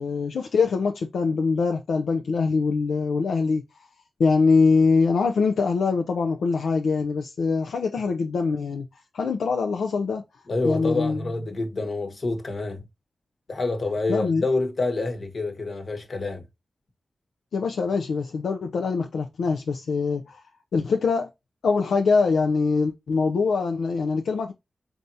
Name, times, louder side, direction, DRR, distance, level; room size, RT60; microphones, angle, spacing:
voice 1, 0.0-3.6 4.2-8.9 9.1-10.2 10.6-11.3 14.1-14.4 17.5-20.4 20.7-21.3 21.6-24.5, left 4 dB, 85° left, 0.4 m, -23 dB
voice 2, 10.5-12.8 13.5-16.4, left 2 dB, 60° left, 1.1 m, -27 dB
4.2 x 3.4 x 2.6 m
cardioid pair, 55°, 0 cm